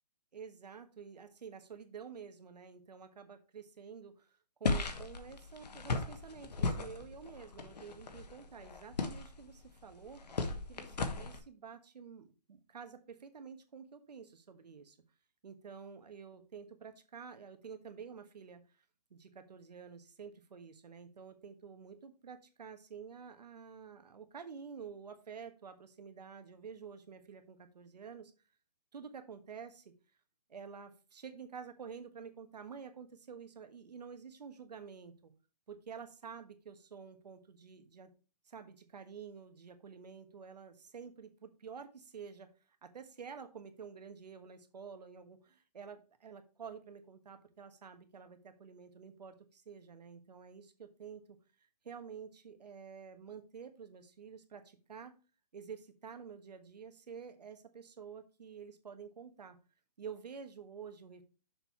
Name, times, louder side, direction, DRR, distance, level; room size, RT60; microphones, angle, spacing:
voice 1, 0.3-4.3 4.6-10.2 10.7-15.0 15.4-18.6 19.1-28.3 28.9-29.9 30.5-35.3 35.7-38.1 38.5-42.5 42.8-51.4 51.8-55.1 55.5-59.6 60.0-61.2, right 6 dB, 85° right, 8 dB, 1.4 m, -49 dB
sound 1, 4.6-11.4, left 3 dB, 85° left, 1.3 m, -37 dB
6.7 x 4.5 x 4.5 m, 0.33 s
hypercardioid pair, 180°, 21 cm